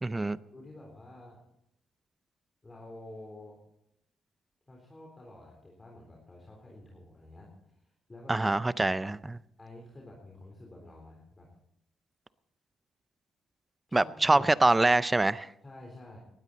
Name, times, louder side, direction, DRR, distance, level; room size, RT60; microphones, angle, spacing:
voice 1, 0.0-0.4 8.3-9.4 13.9-15.5, right 2 dB, 15° right, 0.5 m, -25 dB
voice 2, 0.5-1.4 2.6-3.6 4.7-8.5 9.6-11.5 13.9-14.5 15.6-16.2, left 1 dB, 20° left, 3.7 m, -49 dB
19.0 x 12.5 x 4.1 m
cardioid pair, 90°, 0 cm